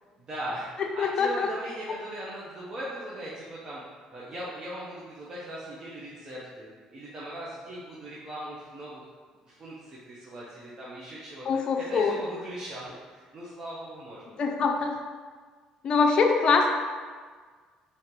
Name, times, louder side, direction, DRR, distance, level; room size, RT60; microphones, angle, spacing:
voice 1, 0.2-3.8 4.1-9.1 9.4-11.4 11.9-12.8 13.1-14.2, right 1 dB, 35° right, -7 dB, 0.8 m, -39 dB
voice 2, 1.0-1.5 11.5-12.1 14.3-15.0 15.8-16.7, left 5 dB, 45° left, 2 dB, 0.5 m, -24 dB
3.8 x 3.7 x 2.9 m, 1.5 s
cardioid pair, 110°, 2 cm